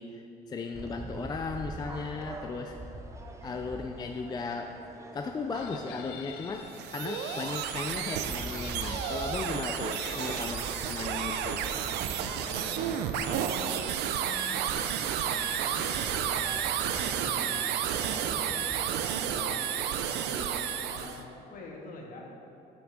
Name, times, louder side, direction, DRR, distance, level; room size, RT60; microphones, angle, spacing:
voice 1, 0.0-2.8 3.4-4.8 5.1-11.7, left 4 dB, 25° left, 4 dB, 0.4 m, -36 dB
sound 1, 0.7-18.9, right 2 dB, 15° right, 0.7 m, -44 dB
Chicken rooster, 5.5-8.0 8.5-10.9, left 8 dB, 85° left, 0.6 m, -46 dB
sound 2, 6.6-21.2, right 9 dB, 85° right, 0.5 m, -31 dB
voice 2, 12.1-16.7 17.0-18.8 19.2-22.4, left 2 dB, 55° left, -1 dB, 1.6 m, -46 dB
7.6 x 5.9 x 5.2 m, 2.8 s
cardioid pair, 110°, 17 cm